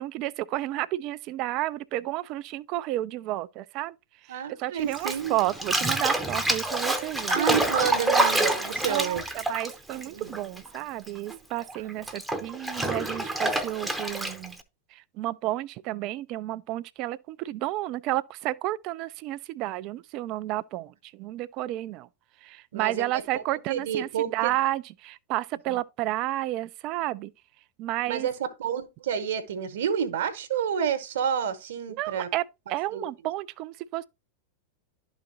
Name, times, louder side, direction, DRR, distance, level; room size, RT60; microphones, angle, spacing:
voice 1, 0.0-4.0 4.2-7.4 8.9-14.6 14.9-22.1 22.4-27.3 27.8-28.3 32.0-34.1, right 16 dB, 40° right, 0.4 m, -31 dB
voice 2, 4.3-5.5 7.3-9.2 10.1-10.3 21.3-21.4 22.7-23.2 23.7-24.6 25.7-25.8 28.1-32.3 32.9-33.0, right 8 dB, 60° right, 1.0 m, -29 dB
Bathtub (filling or washing), 4.9-10.8 11.0-14.6, right 1 dB, 5° right, 0.7 m, -27 dB
12.0 x 4.0 x 2.6 m
figure-of-eight pair, 90°, 0 cm